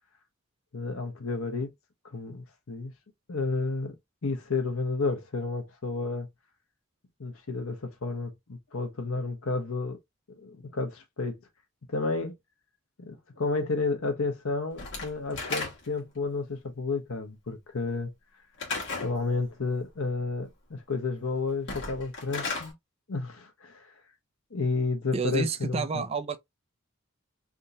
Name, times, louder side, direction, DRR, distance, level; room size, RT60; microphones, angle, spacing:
voice 1, 0.7-1.7 2.1-2.9 3.3-4.0 4.2-6.3 7.2-10.0 10.3-11.4 11.9-12.4 13.0-18.1 19.0-22.7 23.1-23.9 24.5-26.0, left 3 dB, 85° left, 0.9 m, -31 dB
Slam / Wood, 14.8-16.1 18.6-19.2 21.5-22.7, left 3 dB, 55° left, 1.5 m, -34 dB
voice 2, 25.1-26.4, right 5 dB, 30° right, 0.3 m, -30 dB
3.6 x 2.7 x 2.5 m
head